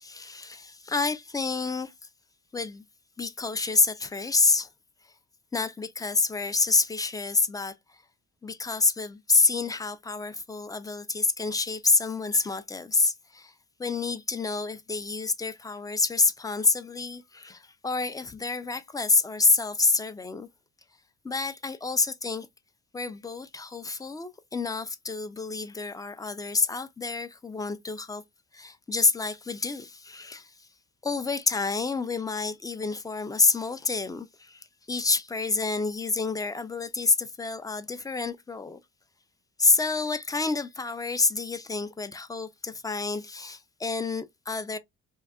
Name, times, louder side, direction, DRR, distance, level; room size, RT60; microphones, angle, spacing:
voice 1, 0.0-1.9 2.5-2.8 3.2-4.7 5.5-7.7 8.4-13.5 13.8-20.5 21.2-22.5 22.9-28.2 28.5-30.5 31.0-38.8 39.6-44.8, left 3 dB, 15° left, 0.3 m, -28 dB
2.7 x 2.4 x 2.3 m
cardioid pair, 90°, 30 cm